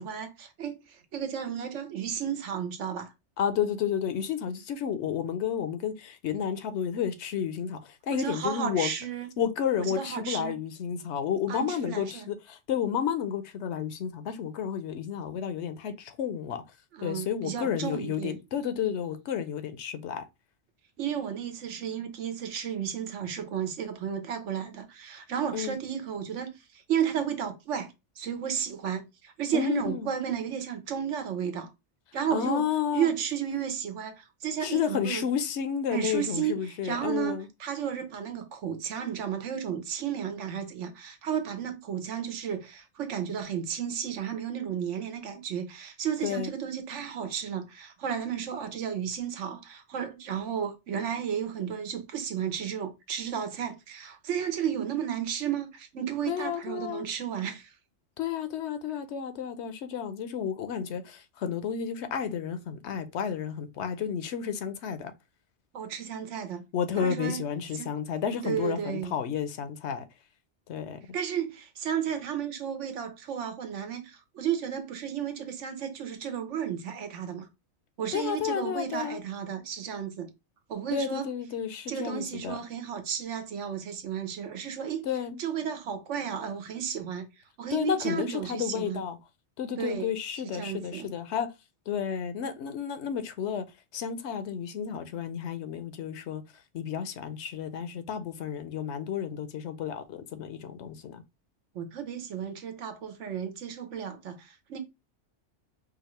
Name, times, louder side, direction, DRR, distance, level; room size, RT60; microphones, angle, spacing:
voice 1, 0.0-3.1 8.1-9.3 9.8-10.6 11.5-12.3 16.9-18.4 21.0-31.7 32.1-32.7 32.9-35.2 35.9-57.7 65.7-66.6 67.0-67.4 67.7-67.9 68.4-69.1 71.1-77.5 78.0-80.3 80.7-81.3 81.9-85.1 85.4-87.3 87.6-89.0 89.8-90.1 90.5-91.1 101.7-104.8, right 8 dB, 90° right, 1.1 m, -33 dB
voice 2, 3.4-8.9 9.4-16.6 17.0-20.2 25.5-25.8 29.5-30.1 32.3-33.1 34.6-37.5 46.2-46.5 56.3-57.1 58.2-65.1 66.7-70.0 70.7-71.0 78.1-79.2 80.9-82.6 85.0-85.4 87.7-89.2 89.6-91.5 91.9-93.6 93.9-96.4 96.7-101.2, left 8 dB, 75° left, 0.9 m, -31 dB
5.0 x 2.4 x 3.0 m
omnidirectional pair, 1.2 m